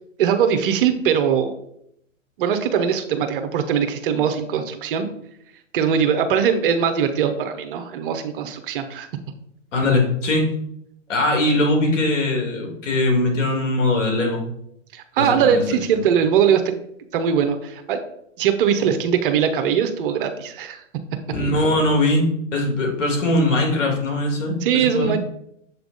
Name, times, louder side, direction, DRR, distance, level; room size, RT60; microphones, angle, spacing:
voice 1, 0.2-1.6 2.4-5.1 5.7-9.1 14.9-16.7 17.1-18.0 18.4-20.8 24.6-25.2, right 7 dB, 45° right, 8 dB, 0.7 m, -21 dB
voice 2, 9.7-10.5 11.1-14.4 15.2-15.6 15.9-16.0 21.3-22.3 22.5-25.1, left 2 dB, 70° left, 1 dB, 2.3 m, -21 dB
7.2 x 3.4 x 3.9 m, 0.74 s
hypercardioid pair, 130°, 39 cm